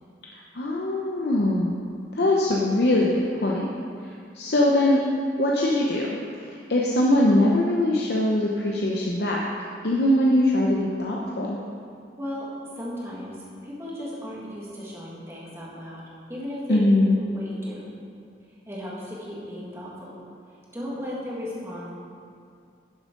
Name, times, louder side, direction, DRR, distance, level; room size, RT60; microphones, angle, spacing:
voice 1, 0.3-1.8 2.1-3.7 4.0-5.0 5.4-9.4 9.8-11.6 16.7-17.2, left 1 dB, 65° left, -3 dB, 0.8 m, -22 dB
voice 2, 12.2-12.5 12.8-16.0 16.3-16.9 17.2-17.8 18.7-20.2 20.5-21.9, left 1 dB, 15° right, -6 dB, 1.8 m, -36 dB
10.5 x 7.3 x 3.8 m, 2.4 s
head